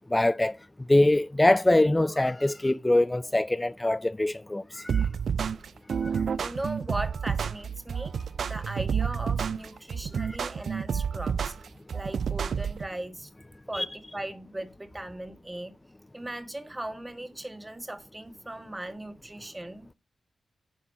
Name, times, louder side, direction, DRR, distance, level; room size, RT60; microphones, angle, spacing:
voice 1, 0.1-0.6 0.9-5.1 10.1-10.4 13.7-13.9, left 1 dB, 20° left, 0.4 m, -23 dB
sound 1, 4.9-12.9, right 7 dB, 75° right, 0.3 m, -29 dB
voice 2, 5.9-8.1 8.5-11.5 11.9-13.3 13.7-13.9 14.1-15.7 16.1-19.9, right 1 dB, 20° right, 1.5 m, -38 dB
10.0 x 3.9 x 5.5 m
supercardioid pair, 40°, 0 cm